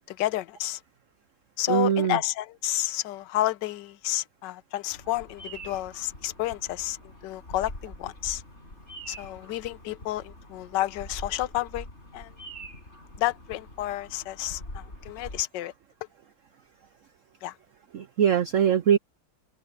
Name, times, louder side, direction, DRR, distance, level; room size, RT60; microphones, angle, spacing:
voice 1, 0.1-0.8 1.6-8.4 9.1-11.9 12.1-12.3 13.2-15.7 17.4-17.5, left 15 dB, 75° left, 1.4 m, -30 dB
voice 2, 1.7-2.2 17.9-19.0, right 8 dB, 70° right, 0.7 m, -22 dB
Bird vocalization bird call bird song, 4.9-15.4, equal, 35° left, 6.9 m, -44 dB
open air
omnidirectional pair, 2.0 m